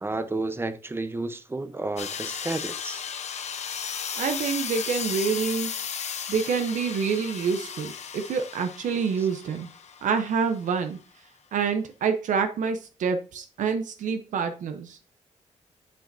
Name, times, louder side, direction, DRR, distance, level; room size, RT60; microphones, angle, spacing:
voice 1, 0.0-3.0, right 2 dB, 20° right, 0.7 m, -31 dB
sound 1, 2.0-10.6, left 7 dB, 60° left, 0.8 m, -35 dB
voice 2, 4.1-5.7 6.3-9.7 10.0-11.0 11.5-15.0, right 6 dB, 80° right, 0.7 m, -27 dB
9.2 x 5.1 x 2.6 m
cardioid pair, 100°, 13 cm